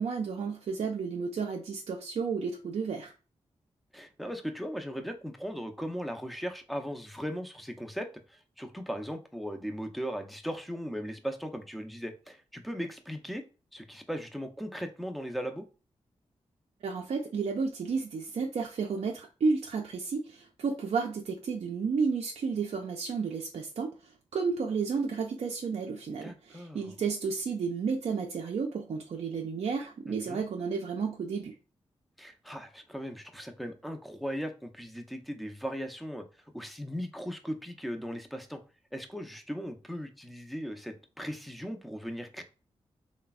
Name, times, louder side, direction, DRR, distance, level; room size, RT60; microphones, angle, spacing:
voice 1, 0.0-3.1 16.8-23.9 24.3-31.6, right 5 dB, 65° right, 0.4 m, -32 dB
voice 2, 3.9-13.4 13.7-15.6 26.2-26.9 30.1-30.4 32.2-36.2 36.5-38.6 38.9-42.4, equal, ahead, 0.5 m, -38 dB
3.2 x 2.1 x 2.3 m
cardioid pair, 50°, 12 cm